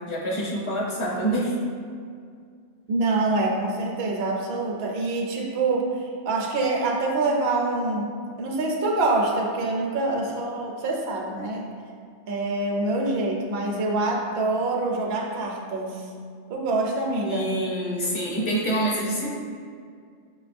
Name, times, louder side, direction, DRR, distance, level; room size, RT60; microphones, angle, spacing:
voice 1, 0.1-1.5 17.2-19.3, right 1 dB, 30° left, -5 dB, 0.8 m, -26 dB
voice 2, 2.9-8.1 8.4-11.6 12.3-16.0 16.5-17.6, right 2 dB, 65° right, 0 dB, 0.8 m, -25 dB
6.4 x 2.3 x 2.5 m, 2.2 s
omnidirectional pair, 1.2 m